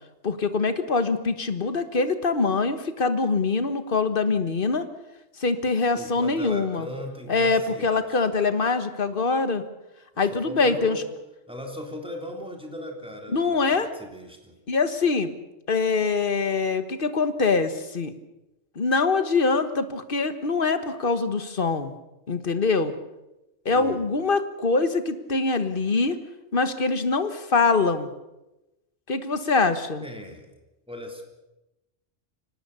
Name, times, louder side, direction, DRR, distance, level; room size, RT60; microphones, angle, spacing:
voice 1, 0.2-4.9 5.4-6.9 7.3-9.6 10.2-11.0 13.3-13.9 14.7-15.3 15.7-18.1 18.7-21.9 22.3-22.9 23.6-26.2 26.5-28.1 29.1-30.0, left 4 dB, 45° left, 10 dB, 1.5 m, -24 dB
voice 2, 5.9-8.2 10.3-11.1 11.5-14.5 23.7-24.0 30.0-30.5 30.9-31.2, equal, 5° right, 2 dB, 3.4 m, -38 dB
25.0 x 18.5 x 6.9 m, 0.97 s
omnidirectional pair, 1.3 m